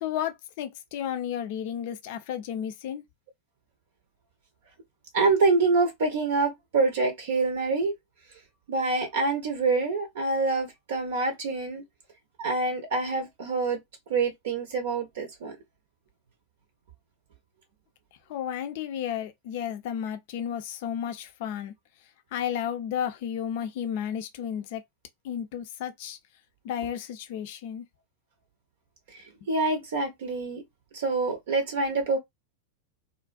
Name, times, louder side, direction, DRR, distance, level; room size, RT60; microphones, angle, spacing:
voice 1, 0.0-3.0 18.3-21.7 22.3-24.8 25.2-26.2 26.6-27.8, left 9 dB, 50° left, 0.5 m, -32 dB
voice 2, 5.1-7.9 8.7-11.8 12.4-13.8 14.1-15.5 29.1-30.6 30.9-32.2, right 3 dB, 55° right, 0.6 m, -26 dB
2.4 x 2.1 x 2.4 m
figure-of-eight pair, 90°, 0 cm